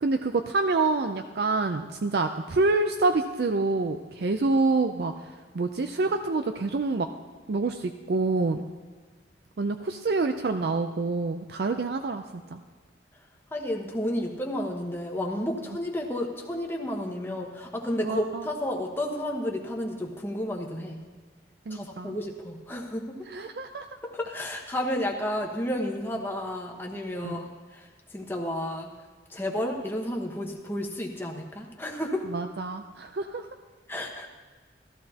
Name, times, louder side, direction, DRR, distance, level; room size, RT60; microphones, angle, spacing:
voice 1, 0.0-5.1 5.5-7.1 7.5-8.7 9.6-12.6 18.0-18.5 21.7-22.2 23.3-23.9 27.1-27.4 32.3-33.5, right 3 dB, 60° right, 7 dB, 0.4 m, -27 dB
voice 2, 13.5-21.0 21.7-23.0 24.0-27.5 27.7-27.9 28.1-28.9 29.3-32.2 33.9-34.3, left 1 dB, 10° left, 0 dB, 1.1 m, -31 dB
14.5 x 13.5 x 2.9 m, 1.4 s
head